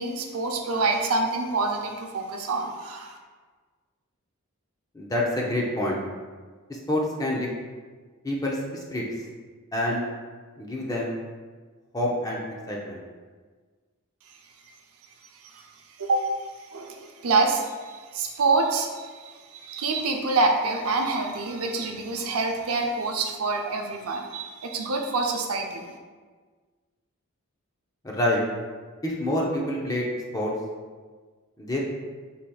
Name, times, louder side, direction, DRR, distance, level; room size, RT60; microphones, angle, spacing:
voice 1, 0.0-3.2 15.4-15.7 16.0-16.3 16.7-25.9, right 3 dB, 90° right, 2 dB, 0.6 m, -26 dB
voice 2, 4.9-6.0 6.7-7.5 8.2-9.0 9.7-10.0 10.6-11.1 11.9-13.0 28.0-28.4 29.0-30.1 30.3-30.5 31.6-31.8, left 1 dB, 15° left, -3 dB, 0.5 m, -27 dB
4.9 x 4.2 x 2.3 m, 1.5 s
head